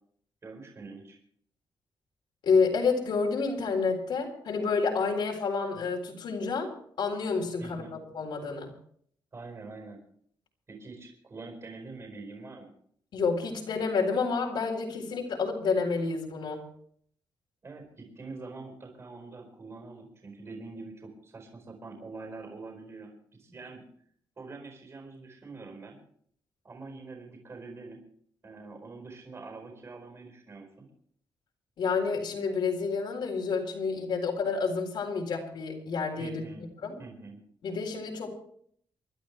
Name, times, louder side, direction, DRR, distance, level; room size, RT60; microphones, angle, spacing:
voice 1, 0.4-1.2 7.6-7.9 9.3-10.0 10.7-12.7 17.6-23.8 24.4-26.0 26.6-28.0 28.4-30.9 36.2-36.6 37.0-37.4, right 3 dB, 35° right, 3 dB, 4.7 m, -45 dB
voice 2, 2.4-6.7 7.0-8.7 13.1-16.7 31.8-36.4 36.8-37.0 37.6-38.3, left 4 dB, 75° left, -1 dB, 4.0 m, -29 dB
28.0 x 12.0 x 3.3 m, 0.63 s
wide cardioid pair, 140°, 8 cm